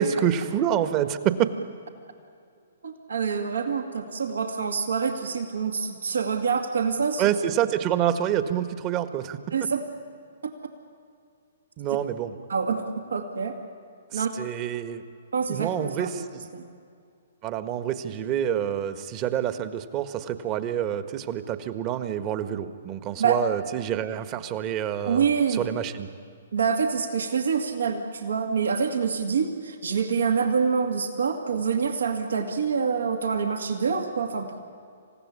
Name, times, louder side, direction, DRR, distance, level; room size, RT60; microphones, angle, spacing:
voice 1, 0.0-1.5 7.2-9.4 11.8-12.3 14.1-15.0 15.5-16.5 17.4-26.1, right 10 dB, 30° right, 9 dB, 1.5 m, -27 dB
voice 2, 2.8-7.3 9.5-9.8 12.5-12.8 13.1-13.6 14.1-14.3 15.3-16.2 16.5-16.7 23.2-23.4 25.0-25.7 26.5-34.6, right 6 dB, 70° right, 4 dB, 2.2 m, -26 dB
27.5 x 16.5 x 9.8 m, 2.4 s
figure-of-eight pair, 125°, 0 cm